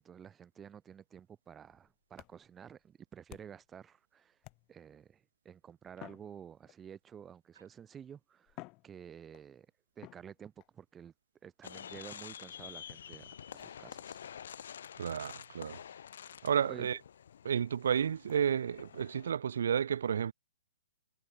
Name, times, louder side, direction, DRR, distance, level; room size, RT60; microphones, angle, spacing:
voice 1, 0.0-4.4 4.7-9.7 10.0-11.1 11.4-14.2 16.6-16.9, right 8 dB, 15° right, 1.3 m, -51 dB
sound 1, 1.7-3.8 4.4-5.0 5.9-7.0 7.9-8.0 8.5-9.5 10.0-10.7 12.2-12.5 13.6-13.8 14.4-14.5 14.9-15.0 15.3-15.5 15.8-15.9 16.3-16.4 16.8-16.9 17.3-17.4 18.3-18.4, left 25 dB, 30° left, 2.9 m, -55 dB
sound 2, 11.6-19.3, left 8 dB, 60° left, 2.5 m, -49 dB
voice 2, 15.0-15.8 16.4-17.0 17.4-20.3, right 8 dB, 60° right, 0.4 m, -31 dB
figure-of-eight pair, 130°, 0 cm